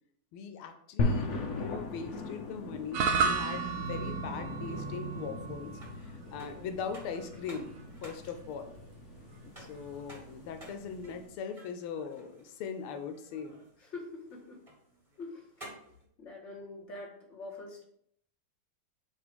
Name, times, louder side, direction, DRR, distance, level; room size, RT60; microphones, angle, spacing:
voice 1, 0.3-5.7 6.0-8.7 9.6-13.6, left 6 dB, 85° left, 7 dB, 1.6 m, -40 dB
sound 1, 1.0-11.3, left 3 dB, 55° left, 0.8 m, -39 dB
sound 2, 2.9-11.3, right 5 dB, 80° right, 0.8 m, -35 dB
sound 3, 4.5-16.0, right 1 dB, 20° right, 1.5 m, -55 dB
voice 2, 6.2-6.7 13.8-14.6 15.2-15.4 16.2-17.8, left 2 dB, 35° left, -3 dB, 2.0 m, -45 dB
8.0 x 3.0 x 5.1 m, 0.70 s
omnidirectional pair, 2.3 m